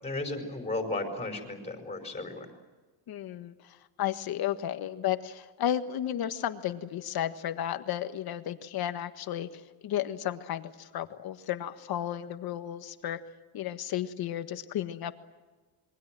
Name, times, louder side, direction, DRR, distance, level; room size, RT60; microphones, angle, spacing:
voice 1, 0.0-2.5, left 2 dB, 15° left, 4 dB, 5.0 m, -34 dB
voice 2, 3.1-13.2 13.5-15.1, left 11 dB, 55° left, 9 dB, 1.6 m, -33 dB
27.5 x 23.5 x 7.7 m, 1.2 s
cardioid pair, 155°, 44 cm